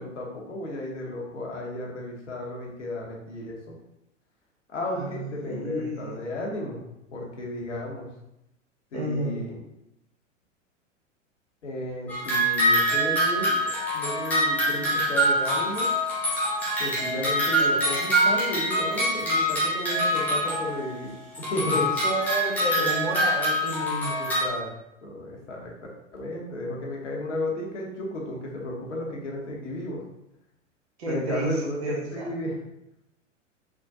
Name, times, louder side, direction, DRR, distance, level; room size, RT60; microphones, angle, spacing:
voice 1, 0.0-3.7 4.7-6.8 7.1-8.1 8.9-9.6 11.6-15.9 16.8-21.9 22.8-22.9 24.2-24.7 25.0-25.7 26.1-30.0 31.1-32.6, left 1 dB, 65° left, -1 dB, 0.9 m, -33 dB
voice 2, 4.9-6.2 8.9-9.4 22.0-24.2 31.0-32.3, right 1 dB, 55° right, 0 dB, 0.8 m, -31 dB
sound 1, 12.1-20.9 21.3-24.4, equal, 5° left, 0.3 m, -25 dB
3.4 x 2.2 x 2.6 m, 0.88 s
figure-of-eight pair, 95°, 38 cm